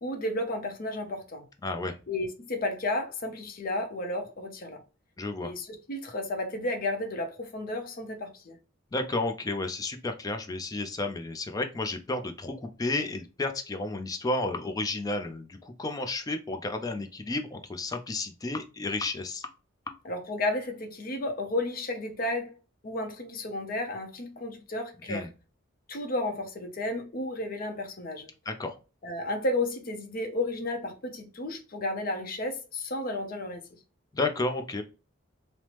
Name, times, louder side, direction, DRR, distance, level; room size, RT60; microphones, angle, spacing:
voice 1, 0.0-1.4 2.1-4.8 5.4-8.6 20.0-22.5 22.8-25.2 25.9-28.3 29.0-33.6, left 1 dB, 45° left, 0.7 m, -32 dB
voice 2, 1.6-2.0 5.2-5.5 8.9-19.5 25.1-25.3 28.5-28.8 34.1-34.8, left 2 dB, 20° left, 0.3 m, -32 dB
3.1 x 2.0 x 2.9 m
head